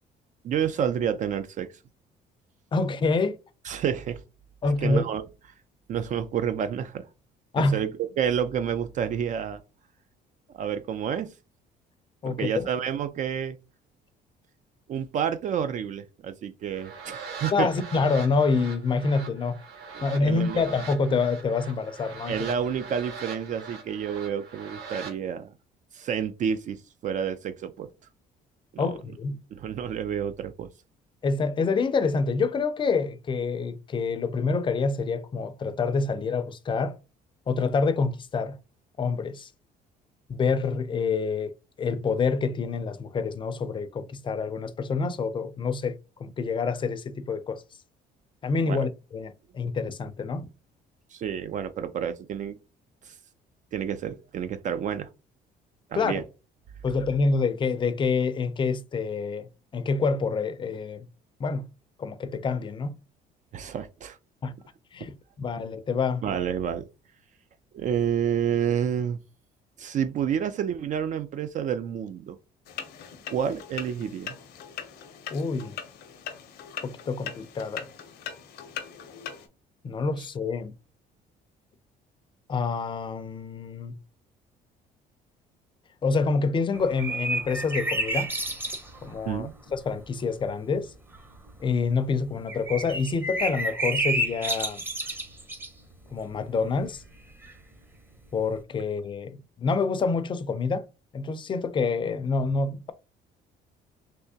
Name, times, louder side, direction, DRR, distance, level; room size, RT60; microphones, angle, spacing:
voice 1, 0.4-1.7 3.6-4.2 4.8-5.2 5.9-7.1 7.7-9.6 10.5-11.3 12.2-13.6 14.9-17.7 19.9-20.6 22.3-25.5 25.9-27.9 28.7-28.9 29.5-30.7 48.7-48.8 51.1-52.6 53.0-53.1 53.7-55.1 55.9-56.2 63.5-64.2 66.2-66.9 67.7-69.2 69.8-72.4 73.3-74.4 89.3-89.5, right 8 dB, 50° right, 0.4 m, -29 dB
voice 2, 2.7-3.4 4.6-5.0 7.5-7.8 12.2-12.7 17.5-19.6 20.0-22.5 28.8-29.4 31.2-37.0 37.5-38.6 39.0-39.5 40.3-47.6 48.4-50.5 55.9-56.2 56.8-61.0 61.4-61.6 62.0-63.0 64.4-64.5 64.9-66.2 75.3-75.8 76.8-77.9 79.8-80.7 82.5-83.9 86.0-88.3 89.0-90.9 91.6-94.8 96.1-97.0 98.3-100.8 101.1-102.9, left 4 dB, 30° left, 0.4 m, -27 dB
sound 1, 16.7-25.1, right 5 dB, 85° right, 1.5 m, -42 dB
sound 2, 72.7-79.5, left 8 dB, 70° left, 0.7 m, -40 dB
sound 3, 86.8-89.2 89.4-89.5 90.0-90.1 91.1-91.5 92.5-95.7 97.4-97.5, right 1 dB, 10° right, 0.7 m, -30 dB
3.4 x 2.8 x 2.7 m
cardioid pair, 110°, 17 cm